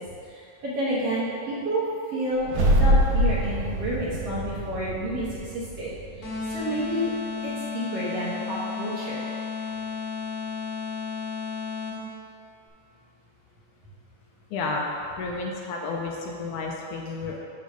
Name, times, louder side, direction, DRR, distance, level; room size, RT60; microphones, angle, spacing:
voice 1, 0.0-2.5 2.8-7.1 7.4-9.3, right 1 dB, 55° right, -8 dB, 2.0 m, -30 dB
sound 1, 2.4-6.8, equal, 70° right, 2.1 m, -25 dB
sound 2, 6.2-12.2, left 5 dB, 50° left, 2.8 m, -33 dB
voice 2, 14.5-14.9 15.2-17.4, left 3 dB, 75° left, -1 dB, 2.1 m, -31 dB
8.2 x 3.8 x 6.7 m, 2.4 s
omnidirectional pair, 3.8 m